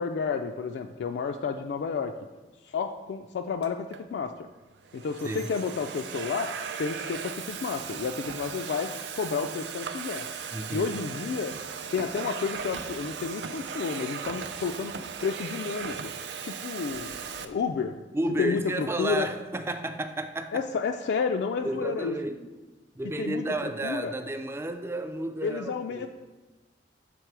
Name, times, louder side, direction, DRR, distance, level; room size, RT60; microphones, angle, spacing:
voice 1, 0.0-2.1 2.6-4.5 4.9-6.5 6.8-10.3 10.7-11.5 11.9-14.9 15.2-16.0 16.4-18.0 18.4-19.3 20.5-22.2 23.2-24.1 25.4-26.1, left 5 dB, 70° left, 5 dB, 0.3 m, -31 dB
Domestic sounds home sounds, 3.6-4.0 4.7-17.5, right 6 dB, 75° right, 0.4 m, -37 dB
voice 2, 10.5-10.9 18.1-20.6 21.6-22.5 23.0-26.1, right 1 dB, 15° right, 8 dB, 0.3 m, -32 dB
6.8 x 3.6 x 4.6 m, 1.2 s
head